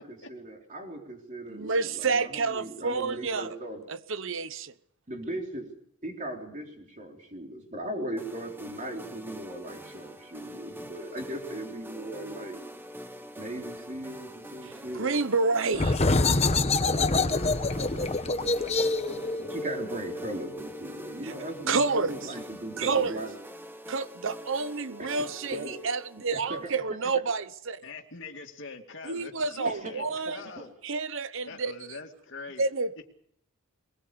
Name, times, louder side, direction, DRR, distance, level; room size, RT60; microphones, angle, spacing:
voice 1, 0.0-3.8 5.1-5.7 6.0-12.6 13.4-15.1 17.9-23.4 25.0-25.1 25.5-25.9 26.3-26.7 29.6-30.6, right 1 dB, 35° right, 3.9 m, -38 dB
voice 2, 1.5-3.5 3.9-4.7 14.6-16.0 21.2-21.3 21.7-22.1 22.8-23.2 23.9-27.8 29.0-30.4 30.8-31.7 32.6-33.1, right 4 dB, 60° right, 1.0 m, -29 dB
sound 1, 8.2-26.8, equal, 10° right, 1.2 m, -45 dB
sound 2, 15.7-21.1, left 3 dB, 30° left, 1.1 m, -26 dB
voice 3, 27.8-30.7 31.5-32.7, left 4 dB, 55° left, 2.5 m, -43 dB
22.0 x 21.0 x 6.9 m
head